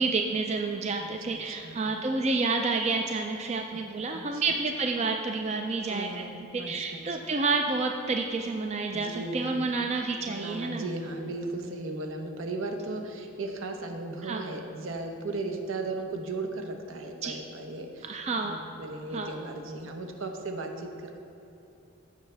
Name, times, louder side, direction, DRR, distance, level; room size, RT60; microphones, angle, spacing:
voice 1, 0.0-6.2 6.5-10.9 14.2-14.4 17.2-17.4 18.0-18.6 19.1-19.3, right 3 dB, 30° right, 3 dB, 0.4 m, -29 dB
voice 2, 1.0-2.0 3.7-3.8 4.1-4.4 5.9-7.1 8.9-9.6 10.3-21.2, right 2 dB, 70° right, 3 dB, 0.9 m, -36 dB
15.0 x 6.4 x 3.4 m, 2.9 s
head